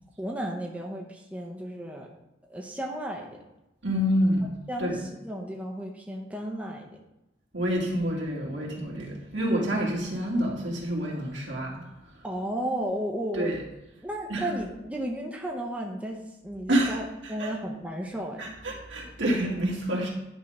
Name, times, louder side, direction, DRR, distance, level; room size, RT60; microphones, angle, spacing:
voice 1, 0.2-2.1 2.5-3.4 4.7-6.9 12.2-13.5 14.0-16.2 16.4-17.0 17.3-18.5, right 1 dB, 10° right, 0 dB, 0.8 m, -33 dB
voice 2, 3.8-4.5 4.8-5.0 7.5-11.9 12.1-12.2 13.3-13.6 14.3-14.5 16.7-17.5 18.4-20.1, equal, 70° right, -2 dB, 2.3 m, -28 dB
10.5 x 3.6 x 5.3 m, 0.94 s
head